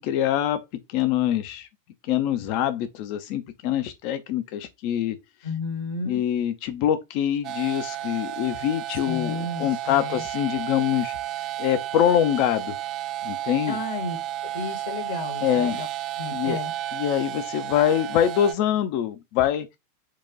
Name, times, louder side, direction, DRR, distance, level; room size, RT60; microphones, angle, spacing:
voice 1, 0.0-1.7 2.0-5.2 6.1-11.2 11.6-12.7 13.2-13.8 15.4-15.8 16.3-16.6 16.9-19.8, left 10 dB, 45° left, 0.4 m, -24 dB
voice 2, 5.4-6.2 9.0-10.2 13.7-14.2 14.5-15.9 16.2-16.7, left 3 dB, 60° left, 1.1 m, -32 dB
sound 1, 7.4-18.5, right 12 dB, 35° right, 0.4 m, -32 dB
4.6 x 2.2 x 3.8 m
figure-of-eight pair, 90°, 0 cm